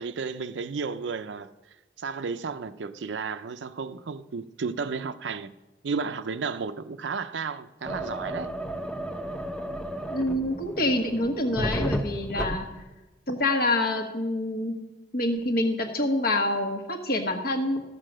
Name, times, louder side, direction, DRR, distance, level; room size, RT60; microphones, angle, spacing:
voice 1, 0.0-1.5 2.0-5.5 5.8-8.5, right 5 dB, 80° right, 0.5 m, -33 dB
sound 1, 7.8-12.9, equal, 5° left, 0.7 m, -33 dB
voice 2, 10.1-12.7 13.3-14.7 15.1-17.8, left 1 dB, 55° left, 1.4 m, -26 dB
14.0 x 6.6 x 6.2 m
head